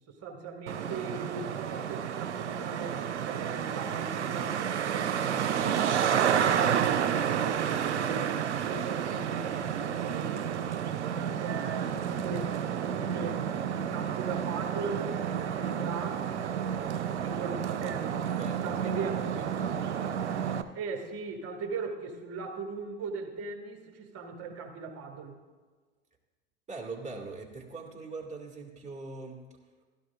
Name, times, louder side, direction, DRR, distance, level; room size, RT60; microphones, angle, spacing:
voice 1, 0.0-5.9 6.2-10.7 11.2-16.3 17.2-19.7 20.7-25.4, right 4 dB, 45° right, 3 dB, 2.2 m, -39 dB
Traffic noise roadway noise, 0.7-20.6, right 8 dB, 85° right, 0.7 m, -30 dB
voice 2, 18.4-18.9 19.3-19.7 26.7-29.4, right 3 dB, 20° right, 1 dB, 2.4 m, -42 dB
16.0 x 12.5 x 2.5 m, 1.4 s
hypercardioid pair, 80°, 34 cm